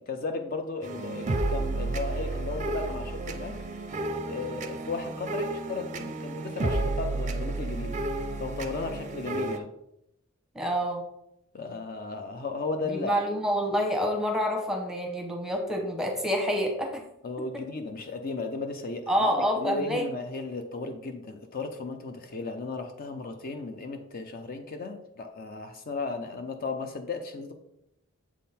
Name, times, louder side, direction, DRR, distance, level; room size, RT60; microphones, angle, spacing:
voice 1, 0.0-3.6 4.3-8.0 8.4-9.7 11.5-13.2 17.2-27.5, left 3 dB, 45° left, 6 dB, 0.5 m, -35 dB
sound 1, 0.8-9.6, right 2 dB, 35° right, 0.5 m, -32 dB
voice 2, 10.5-11.0 12.9-17.0 19.1-20.1, equal, 5° right, 2 dB, 0.9 m, -27 dB
7.2 x 3.7 x 4.2 m, 0.81 s
head